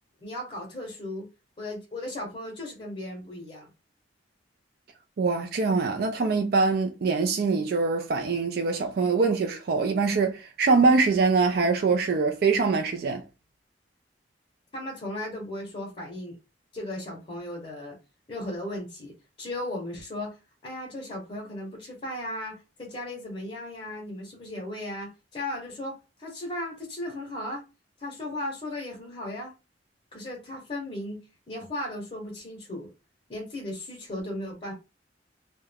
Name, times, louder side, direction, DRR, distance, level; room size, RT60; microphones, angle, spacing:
voice 1, 0.2-1.3 1.6-3.7 14.7-16.4 16.7-18.0 18.3-19.1 19.4-27.6 28.0-29.5 30.1-32.9 33.3-34.7, left 1 dB, 30° left, 0.7 m, -36 dB
voice 2, 5.2-13.2, right 4 dB, 55° right, 0.4 m, -23 dB
2.3 x 2.1 x 3.3 m
head